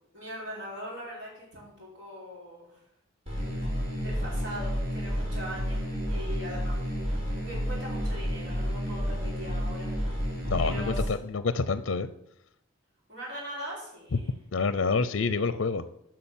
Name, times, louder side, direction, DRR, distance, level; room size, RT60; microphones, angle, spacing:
voice 1, 0.1-2.8 3.3-3.5 4.0-9.9 10.6-11.1 13.1-14.3, equal, 60° right, -5 dB, 4.8 m, -41 dB
sound 1, 3.3-11.1, equal, 30° right, 3.1 m, -31 dB
voice 2, 10.4-12.1 14.1-14.2 14.5-15.8, left 4 dB, 65° left, 14 dB, 0.5 m, -27 dB
8.6 x 6.2 x 7.2 m, 0.77 s
head